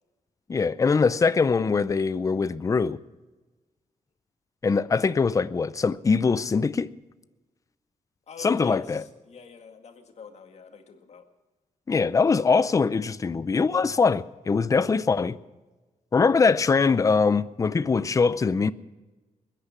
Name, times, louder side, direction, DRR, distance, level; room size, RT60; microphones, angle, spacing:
voice 1, 0.5-3.0 4.6-6.9 8.4-9.0 11.9-15.4 16.1-18.7, left 4 dB, 25° left, 0.5 m, -22 dB
voice 2, 8.3-11.2, left 6 dB, 55° left, 2.1 m, -47 dB
21.5 x 10.0 x 6.0 m
wide cardioid pair, 130°, 14 cm